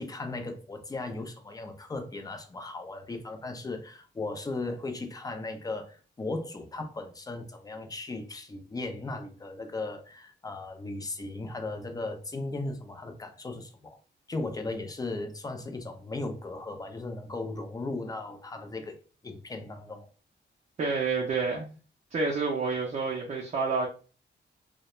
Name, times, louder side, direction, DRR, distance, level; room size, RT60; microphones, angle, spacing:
voice 1, 0.0-14.0 14.3-19.0 19.2-20.1, left 2 dB, 20° left, 6 dB, 0.4 m, -37 dB
voice 2, 20.8-21.7 22.1-23.9, right 4 dB, 40° right, -2 dB, 0.5 m, -28 dB
2.3 x 2.1 x 2.9 m, 0.36 s
wide cardioid pair, 145°, 20 cm